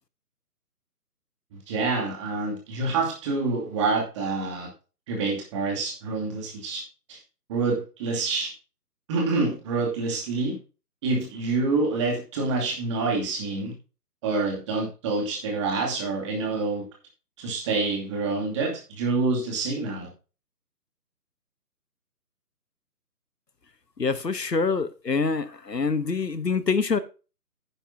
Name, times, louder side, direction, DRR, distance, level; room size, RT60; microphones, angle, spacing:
voice 1, 1.5-4.7 5.1-6.8 7.1-7.2 7.5-8.5 9.1-10.6 11.0-13.7 14.2-16.8 17.4-20.1, right 3 dB, 20° right, 2.5 m, -27 dB
voice 2, 24.0-27.0, left 4 dB, 85° left, 1.1 m, -25 dB
10.5 x 10.0 x 2.7 m
figure-of-eight pair, 145°, 48 cm